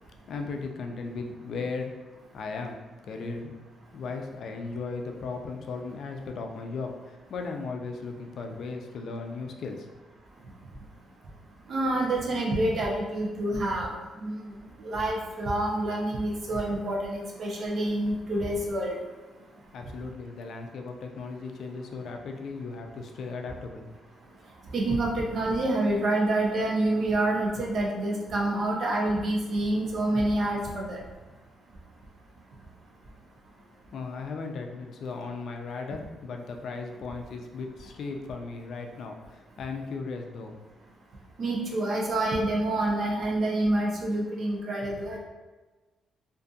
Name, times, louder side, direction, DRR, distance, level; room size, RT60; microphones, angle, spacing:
voice 1, 0.3-1.9 2.3-3.5 3.9-9.9 19.7-23.9 33.9-40.6, left 4 dB, 65° left, 3 dB, 0.3 m, -36 dB
voice 2, 11.7-14.5 14.8-19.0 24.7-31.0 41.4-45.2, right 1 dB, 55° right, -1 dB, 0.6 m, -27 dB
2.5 x 2.5 x 2.3 m, 1.2 s
cardioid pair, 90°, 0 cm